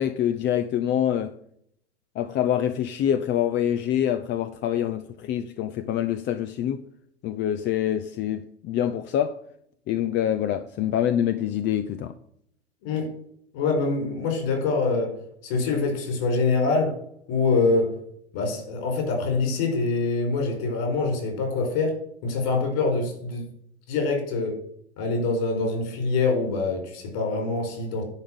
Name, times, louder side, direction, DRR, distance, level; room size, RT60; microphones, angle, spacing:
voice 1, 0.0-1.3 2.1-6.8 7.2-9.4 9.9-12.2, left 10 dB, 35° left, 0.7 m, -25 dB
voice 2, 13.5-15.2 15.4-17.0 17.3-18.0 18.3-22.0 22.2-23.4 23.9-24.6 25.0-28.0, left 3 dB, 55° left, 4.9 m, -25 dB
10.5 x 5.2 x 7.9 m
figure-of-eight pair, 80°, 33 cm